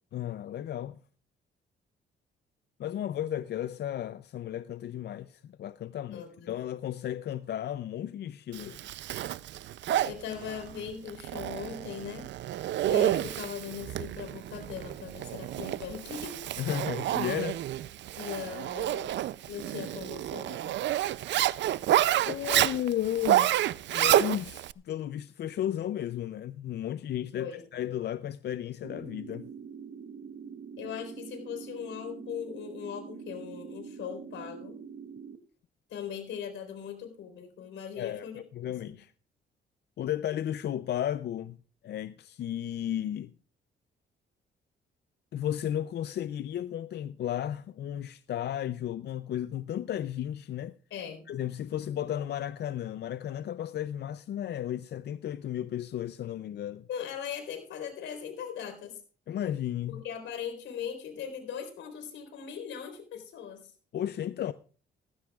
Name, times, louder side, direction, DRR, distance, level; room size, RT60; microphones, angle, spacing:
voice 1, 0.1-1.0 2.8-8.8 16.6-17.6 22.3-23.5 23.9-29.5 38.0-38.3 38.5-39.1 40.0-41.6 41.8-43.3 45.3-50.7 51.3-56.9 59.3-60.0 63.9-64.5, left 11 dB, 60° left, 0.5 m, -34 dB
voice 2, 6.1-6.5 10.0-12.3 12.9-16.4 18.2-19.2 19.5-20.8 27.3-27.6 30.8-34.8 35.9-38.4 38.7-39.0 50.9-51.3 56.9-58.9 59.9-63.7, left 8 dB, 80° left, 4.2 m, -39 dB
Zipper (clothing), 8.5-24.7, right 13 dB, 65° right, 0.5 m, -29 dB
sound 1, 28.8-35.4, right 6 dB, 50° right, 1.2 m, -44 dB
18.0 x 15.0 x 2.4 m
cardioid pair, 90°, 20 cm